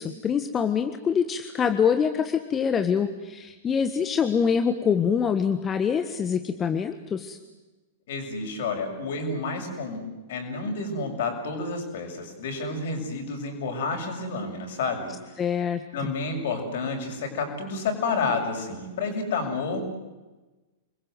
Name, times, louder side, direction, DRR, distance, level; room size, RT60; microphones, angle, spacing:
voice 1, 0.0-7.4 15.4-16.1, left 7 dB, 20° left, 8 dB, 1.5 m, -25 dB
voice 2, 8.1-15.1 15.9-19.8, left 4 dB, 55° left, 4 dB, 6.9 m, -30 dB
29.5 x 22.0 x 8.0 m, 1.2 s
figure-of-eight pair, 100°, 0 cm